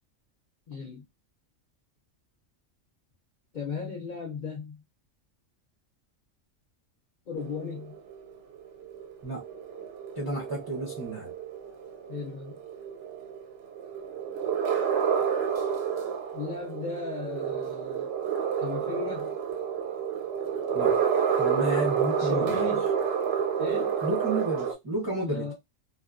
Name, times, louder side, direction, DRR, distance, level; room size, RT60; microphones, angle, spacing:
voice 1, 0.7-1.0 3.5-4.8 7.3-8.0 12.1-12.6 16.3-18.1 18.6-19.3 22.2-22.9 23.6-23.9 25.3-25.5, left 5 dB, 55° left, 0.5 m, -36 dB
sound 1, 7.4-24.7, right 7 dB, 65° right, 0.7 m, -29 dB
voice 2, 10.2-11.3 20.7-21.0 21.4-22.5 24.0-25.5, right 1 dB, 30° right, 0.4 m, -31 dB
2.8 x 2.1 x 2.3 m
omnidirectional pair, 1.4 m